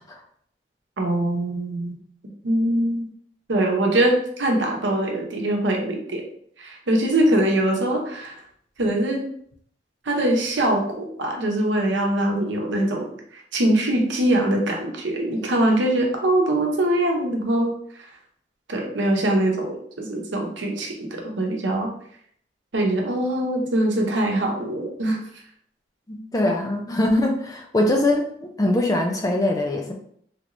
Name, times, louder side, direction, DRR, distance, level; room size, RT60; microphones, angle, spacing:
voice 1, 1.0-2.0 2.4-3.1 3.5-6.2 6.6-8.4 8.8-9.3 10.1-13.1 13.5-17.7 18.7-21.9 22.7-25.2, right 1 dB, 85° right, 1 dB, 0.8 m, -22 dB
voice 2, 26.1-29.9, left 1 dB, 20° left, 2 dB, 0.4 m, -22 dB
3.3 x 3.0 x 2.5 m, 0.64 s
head